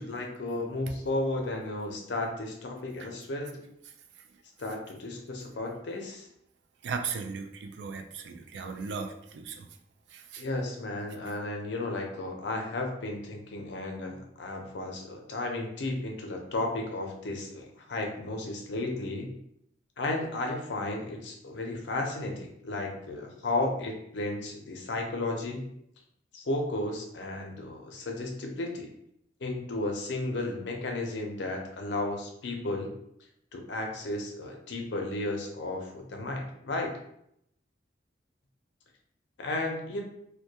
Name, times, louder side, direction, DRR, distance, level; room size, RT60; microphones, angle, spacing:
voice 1, 0.0-3.6 4.6-6.3 10.4-19.3 20.0-25.7 26.3-28.9 29.4-32.9 33.5-36.9 39.4-40.0, left 2 dB, 75° left, 2 dB, 0.5 m, -33 dB
voice 2, 6.8-9.7 10.1-10.4, right 5 dB, 70° right, 5 dB, 0.3 m, -37 dB
2.2 x 2.1 x 2.8 m, 0.75 s
head